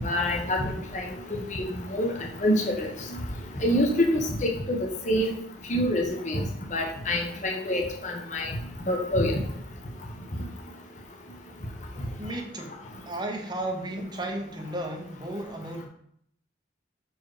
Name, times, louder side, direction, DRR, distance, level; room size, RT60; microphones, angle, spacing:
voice 1, 0.0-1.6 1.9-2.1 2.4-2.9 3.6-4.8 5.0-5.3 5.7-6.4 6.7-8.5 8.9-9.4, left 1 dB, 40° left, 0 dB, 1.1 m, -26 dB
voice 2, 12.2-15.9, right 1 dB, 20° right, 3 dB, 0.9 m, -34 dB
6.1 x 4.6 x 4.9 m, 0.68 s
head